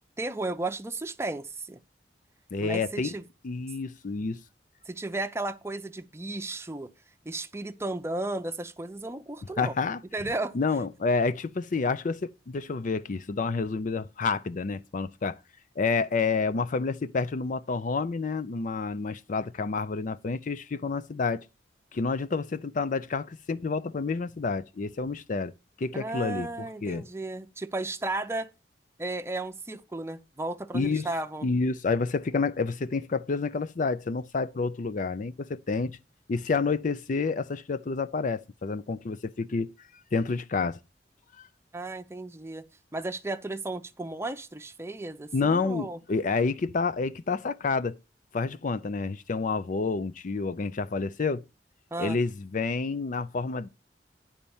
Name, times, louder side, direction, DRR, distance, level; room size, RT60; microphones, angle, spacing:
voice 1, 0.2-1.8 2.6-3.2 4.9-6.9 7.3-9.7 10.1-10.5 25.9-28.5 29.0-31.5 41.7-42.6 42.9-46.0 51.9-52.2, right 2 dB, 15° right, 0.6 m, -34 dB
voice 2, 2.5-3.1 3.4-4.4 9.6-10.0 10.5-15.4 15.8-21.5 21.9-25.5 25.8-27.1 30.7-31.1 31.4-36.0 36.3-40.8 41.4-41.5 45.3-48.0 48.3-51.4 52.0-53.7, left 4 dB, 45° left, 0.5 m, -29 dB
10.5 x 4.2 x 7.0 m
head